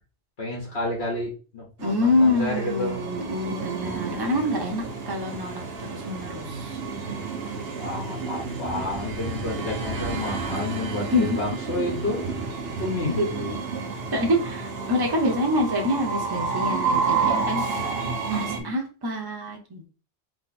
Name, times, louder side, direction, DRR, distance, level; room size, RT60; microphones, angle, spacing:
voice 1, 0.4-3.0 7.8-12.5 12.8-13.6, left 2 dB, 60° left, -3 dB, 1.6 m, -30 dB
voice 2, 1.8-5.6 5.9-6.8 11.1-11.3 13.2-13.3 14.1-18.0 18.3-19.8, left 1 dB, 25° right, 1 dB, 0.8 m, -26 dB
Train, 1.8-18.6, right 4 dB, 60° right, 1.0 m, -30 dB
3.6 x 3.2 x 4.2 m, 0.36 s
omnidirectional pair, 1.2 m